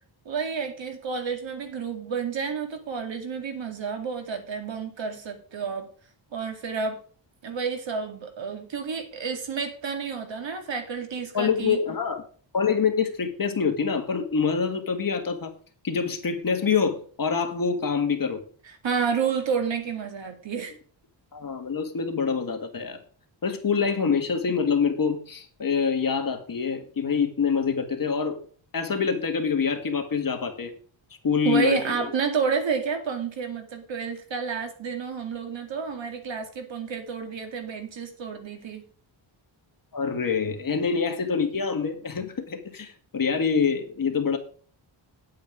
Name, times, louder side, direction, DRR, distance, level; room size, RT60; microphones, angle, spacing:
voice 1, 0.3-5.9 6.3-7.0 7.4-11.8 18.6-20.7 31.4-38.9, right 6 dB, 65° right, 2.2 m, -30 dB
voice 2, 11.3-12.2 12.5-15.5 15.8-18.4 21.3-23.0 23.4-28.4 28.7-30.7 31.2-32.1 39.9-44.4, left 6 dB, 45° left, 1.8 m, -25 dB
9.5 x 8.5 x 4.9 m
wide cardioid pair, 145°, 48 cm